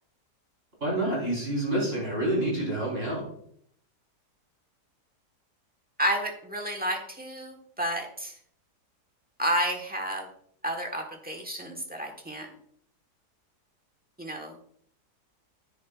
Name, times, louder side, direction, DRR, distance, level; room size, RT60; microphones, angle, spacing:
voice 1, 0.8-3.2, right 1 dB, 35° right, -3 dB, 4.5 m, -28 dB
voice 2, 6.0-8.3 9.4-10.3 10.6-12.5 14.2-14.5, equal, 5° right, 2 dB, 1.1 m, -31 dB
9.9 x 9.5 x 2.4 m, 0.64 s
omnidirectional pair, 1.8 m